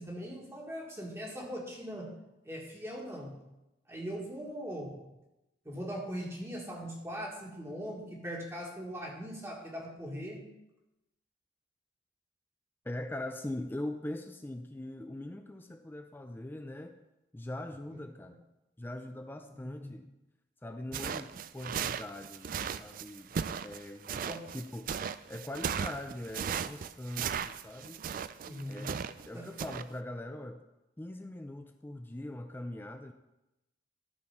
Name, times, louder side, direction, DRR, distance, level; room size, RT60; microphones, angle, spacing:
voice 1, 0.0-2.1 2.4-3.4 3.9-5.0 5.6-10.4 17.9-18.0 19.5-19.9 24.1-24.4 28.4-28.9 29.3-29.5, equal, 15° right, -3 dB, 1.7 m, -40 dB
voice 2, 12.8-16.9 17.3-18.4 18.8-20.1 20.6-23.3 23.6-25.0 25.3-28.0 28.7-30.6 31.0-33.1, left 1 dB, 10° left, 6 dB, 0.4 m, -42 dB
sound 1, 20.9-29.3 29.6-29.8, right 7 dB, 50° right, 0.3 m, -36 dB
12.5 x 4.5 x 5.8 m, 0.95 s
head